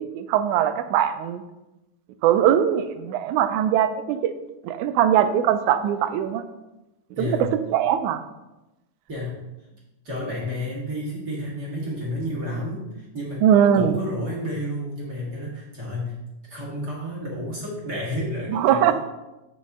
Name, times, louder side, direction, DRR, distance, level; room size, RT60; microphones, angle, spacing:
voice 1, 0.0-1.4 2.2-4.3 4.6-6.4 7.2-7.4 7.7-8.2 13.4-14.0 18.5-18.9, right 10 dB, 90° right, 10 dB, 2.0 m, -21 dB
voice 2, 7.2-7.6 9.1-9.4 10.0-13.5 13.7-16.2 16.5-18.9, equal, 40° right, -5 dB, 1.9 m, -31 dB
7.3 x 5.5 x 3.6 m, 1.0 s
omnidirectional pair, 3.4 m